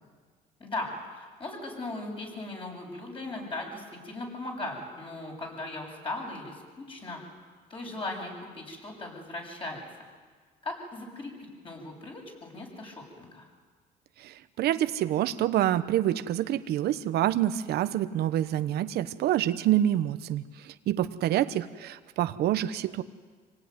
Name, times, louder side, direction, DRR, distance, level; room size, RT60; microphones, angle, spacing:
voice 1, 0.6-7.2 7.7-9.8 10.6-13.5, left 2 dB, 30° left, 0 dB, 7.4 m, -38 dB
voice 2, 14.2-23.0, right 12 dB, 70° right, 11 dB, 1.0 m, -27 dB
26.0 x 18.0 x 9.7 m, 1.5 s
cardioid pair, 110°, 17 cm